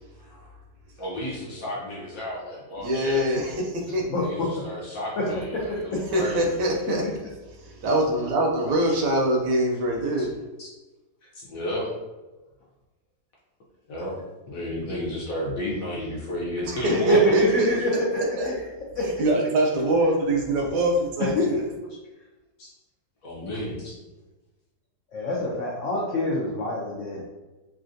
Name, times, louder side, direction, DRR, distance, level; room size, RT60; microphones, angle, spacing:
voice 1, 0.2-0.6 1.0-3.6 4.2-6.5 7.0-7.1 8.6-9.0 10.2-10.3 10.6-10.7 11.3-12.0 13.9-14.2 14.5-17.3 17.7-17.8 22.6-22.7 23.2-23.9, equal, 65° left, -5 dB, 0.9 m, -33 dB
voice 2, 2.8-4.0 6.1-7.1 7.6-10.3 16.6-17.9 18.4-18.5 19.0-21.6, right 1 dB, 75° right, 0 dB, 1.1 m, -24 dB
voice 3, 5.2-5.6 7.0-7.1 17.0-18.6 18.9-19.1 21.2-21.5 25.1-27.2, left 1 dB, 85° left, -4 dB, 0.6 m, -24 dB
3.2 x 2.5 x 2.5 m, 1.1 s
omnidirectional pair, 2.0 m